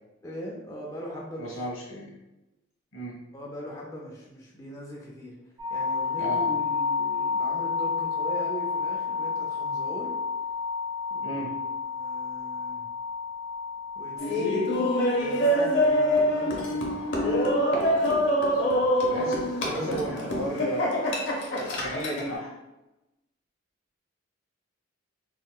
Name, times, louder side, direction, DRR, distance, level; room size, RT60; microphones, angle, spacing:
voice 1, 0.2-1.6 3.3-5.3 5.7-10.1 11.1-11.4 11.9-12.9 14.0-14.5 15.1-17.9 18.5-19.0 19.6-20.1, equal, 15° left, -4 dB, 0.4 m, -40 dB
voice 2, 1.4-2.1 2.9-3.2 6.2-6.4 11.2-11.5 19.1-21.0 21.5-22.5, equal, 85° left, -2 dB, 1.0 m, -34 dB
sound 1, 5.6-19.6, left 5 dB, 25° right, 0.7 m, -32 dB
Laughter, 14.2-22.3, equal, 65° left, 0.6 m, -25 dB
3.6 x 2.1 x 2.3 m, 0.99 s
head